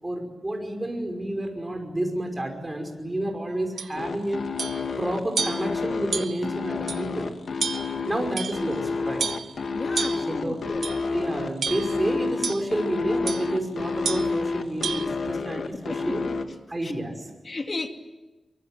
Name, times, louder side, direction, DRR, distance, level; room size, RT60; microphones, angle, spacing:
voice 1, 0.0-4.4 5.0-7.3 8.0-9.3 10.1-10.6 11.1-16.2 16.7-17.3, right 1 dB, 20° right, 5.5 m, -30 dB
sound 1, 3.8-3.9 4.6-4.8 5.4-5.7 6.1-6.5 6.9-7.0 7.6-8.0 8.4-8.7 9.2-9.5 9.9-10.3 10.8-11.1 11.6-12.0 12.4-12.7 13.3-13.5 14.0-14.3 14.8-15.0, right 5 dB, 75° right, 1.1 m, -30 dB
sound 2, 4.0-16.5, left 4 dB, 75° left, 2.0 m, -29 dB
voice 2, 9.7-10.9 15.6-16.1 16.8-16.9 17.4-17.9, left 3 dB, 40° left, 2.5 m, -34 dB
23.5 x 23.0 x 9.1 m
wide cardioid pair, 110°, 0 cm